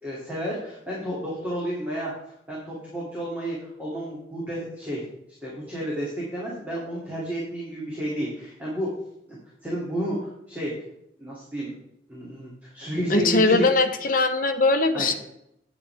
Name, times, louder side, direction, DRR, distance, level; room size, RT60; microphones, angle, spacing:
voice 1, 0.0-2.1 2.5-5.0 5.4-8.9 9.3-9.4 9.6-10.7 11.2-11.7 12.1-13.7 14.9-15.1, right 1 dB, 10° right, -7 dB, 2.7 m, -31 dB
voice 2, 13.1-15.1, left 3 dB, 45° left, 6 dB, 0.9 m, -21 dB
10.0 x 9.5 x 3.5 m, 0.78 s
head